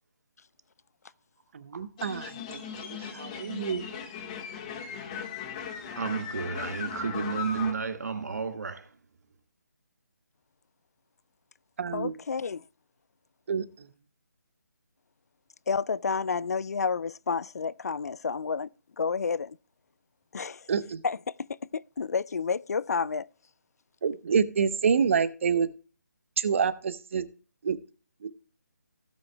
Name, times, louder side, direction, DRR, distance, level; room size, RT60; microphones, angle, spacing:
voice 1, 1.5-3.9 11.8-12.2 13.5-13.9 20.7-21.0 24.0-25.7 26.4-27.3 27.6-27.8 28.2-28.3, right 6 dB, 45° right, 0.9 m, -28 dB
sound 1, 2.0-7.7, left 6 dB, 25° left, 1.6 m, -38 dB
voice 2, 6.0-8.9, right 5 dB, 65° right, 1.7 m, -32 dB
voice 3, 11.9-12.7 15.7-18.7 19.0-19.6 20.3-20.7 21.0-21.5 21.7-23.3, left 5 dB, 60° left, 0.4 m, -30 dB
16.5 x 8.7 x 2.2 m
figure-of-eight pair, 155°, 10 cm